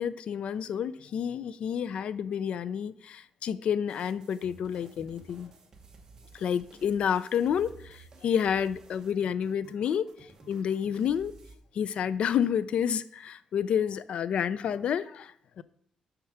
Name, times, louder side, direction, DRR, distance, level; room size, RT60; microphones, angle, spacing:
voice 1, 0.0-5.5 6.3-11.3 11.7-15.6, left 8 dB, 55° left, 16 dB, 0.4 m, -29 dB
sound 1, 3.9-11.5, right 3 dB, 25° right, 1.1 m, -54 dB
7.4 x 5.7 x 5.7 m, 0.69 s
wide cardioid pair, 175°, 2 cm